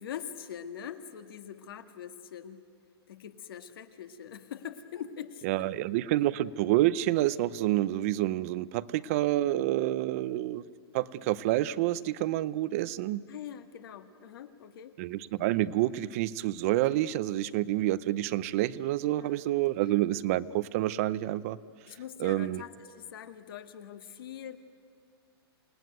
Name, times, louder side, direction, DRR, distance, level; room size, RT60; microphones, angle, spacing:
voice 1, 0.0-2.6 3.1-5.7 13.3-15.0 19.1-19.4 21.9-24.6, left 9 dB, 60° left, 9 dB, 1.8 m, -43 dB
voice 2, 5.4-10.6 10.9-13.2 15.0-21.6 22.2-22.6, right 15 dB, 35° right, 18 dB, 0.6 m, -28 dB
28.5 x 19.0 x 9.3 m, 2.1 s
hypercardioid pair, 165°, 14 cm